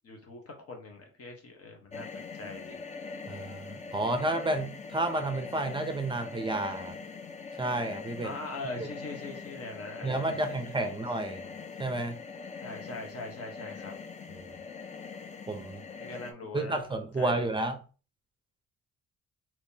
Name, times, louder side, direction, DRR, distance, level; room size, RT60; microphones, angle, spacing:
voice 1, 0.0-2.8 8.2-11.0 12.6-13.9 16.0-17.6, left 2 dB, 50° left, 2 dB, 1.2 m, -42 dB
sound 1, 1.9-16.3, left 5 dB, 25° left, 0.5 m, -43 dB
voice 2, 3.3-7.0 7.6-8.3 8.8-8.9 10.0-11.4 11.8-12.2 14.3-14.5 15.5-15.8 16.5-17.8, right 2 dB, 15° right, 7 dB, 0.6 m, -31 dB
3.4 x 3.0 x 2.8 m, 0.35 s
cardioid pair, 90°, 30 cm